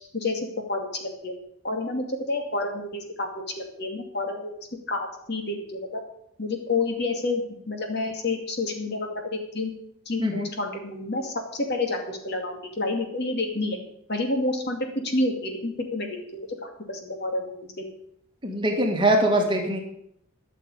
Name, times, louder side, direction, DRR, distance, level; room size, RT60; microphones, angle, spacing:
voice 1, 0.1-1.3 1.6-3.3 3.6-6.0 6.4-7.4 7.7-9.7 10.1-13.8 14.1-14.8 15.0-17.9, left 2 dB, 50° left, 3 dB, 2.3 m, -29 dB
voice 2, 10.2-10.5 18.4-19.8, right 1 dB, 20° right, 1 dB, 2.0 m, -22 dB
13.5 x 6.7 x 8.5 m, 0.72 s
head